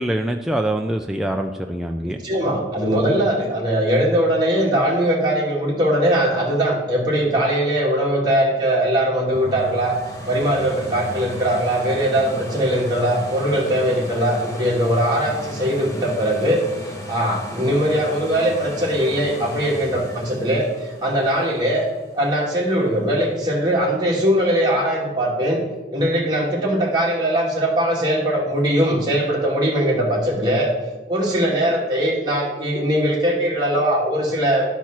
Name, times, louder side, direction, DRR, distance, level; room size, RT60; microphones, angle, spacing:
voice 1, 0.0-2.2, right 1 dB, ahead, 3 dB, 0.3 m, -24 dB
voice 2, 2.0-10.0 10.3-16.6 17.1-21.9 22.1-25.6 25.9-30.7 31.1-34.7, equal, 25° right, -4 dB, 2.0 m, -20 dB
sound 1, 9.3-23.0 23.5-23.6, equal, 20° left, 1.0 m, -36 dB
11.5 x 4.6 x 5.8 m, 1.2 s
head